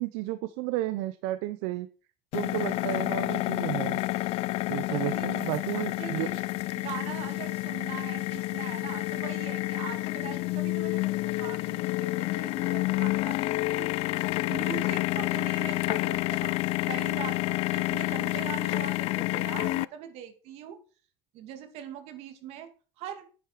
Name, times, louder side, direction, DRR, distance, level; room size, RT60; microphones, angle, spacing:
voice 1, 0.0-1.9 2.3-4.0 4.7-6.3, right 16 dB, 90° right, 13 dB, 0.6 m, -32 dB
sound 1, 2.3-19.8, left 19 dB, 65° left, 0.4 m, -29 dB
voice 2, 2.6-2.9 4.9-14.1 14.5-16.6 16.9-20.8 21.3-22.7 23.0-23.3, right 9 dB, 70° right, 7 dB, 2.2 m, -42 dB
9.2 x 8.5 x 4.5 m, 0.36 s
cardioid pair, 130°, 11 cm